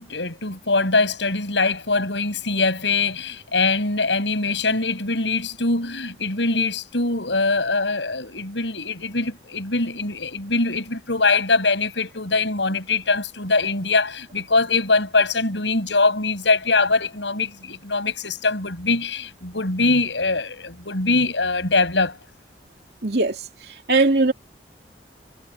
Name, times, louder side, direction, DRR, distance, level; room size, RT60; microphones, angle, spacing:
voice 1, 0.0-22.2, left 3 dB, 80° left, 6.5 m, -22 dB
voice 2, 23.0-23.4 23.9-24.3, right 3 dB, 60° right, 2.8 m, -18 dB
head